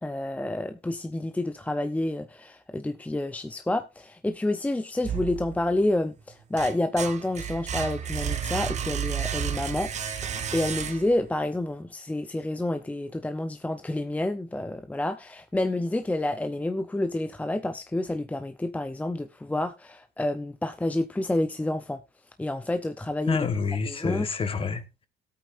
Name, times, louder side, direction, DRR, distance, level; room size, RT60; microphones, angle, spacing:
voice 1, 0.0-9.9 10.2-22.0 22.4-23.5 23.9-24.3, left 1 dB, 10° left, 0.7 m, -29 dB
sound 1, 5.0-5.9 6.3-11.3, right 8 dB, 45° right, 1.2 m, -32 dB
voice 2, 23.3-25.1, left 5 dB, 35° left, 1.3 m, -28 dB
18.0 x 8.5 x 2.6 m
cardioid pair, 110°, 17 cm